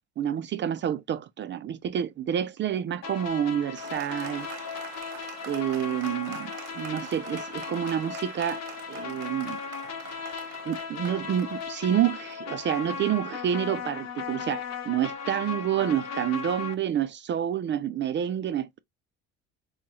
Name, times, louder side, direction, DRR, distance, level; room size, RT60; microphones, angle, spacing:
voice 1, 0.2-4.5 5.5-8.6 8.9-9.6 10.7-18.8, right 10 dB, 35° right, 0.4 m, -28 dB
sound 1, 3.0-16.7, left 6 dB, 55° left, 0.9 m, -37 dB
Applause, 3.8-12.8, right 9 dB, 85° right, 1.0 m, -45 dB
4.4 x 2.3 x 2.9 m
supercardioid pair, 100°, 31 cm